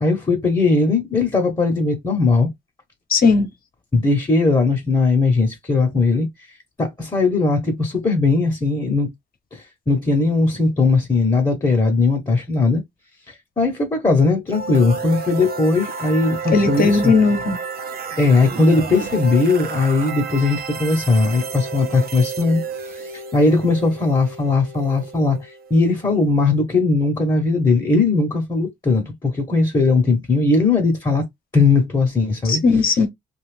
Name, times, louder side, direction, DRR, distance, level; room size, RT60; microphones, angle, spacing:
voice 1, 0.0-2.5 3.9-6.3 6.8-9.1 9.5-12.8 13.3-17.1 18.2-31.2 31.5-32.6, left 3 dB, 20° left, 1.0 m, -19 dB
voice 2, 3.1-3.5 16.5-17.6 32.4-33.1, left 4 dB, 50° left, 1.0 m, -16 dB
sound 1, 14.5-26.3, right 5 dB, 50° right, 0.7 m, -31 dB
2.6 x 2.4 x 3.4 m
cardioid pair, 90°, 20 cm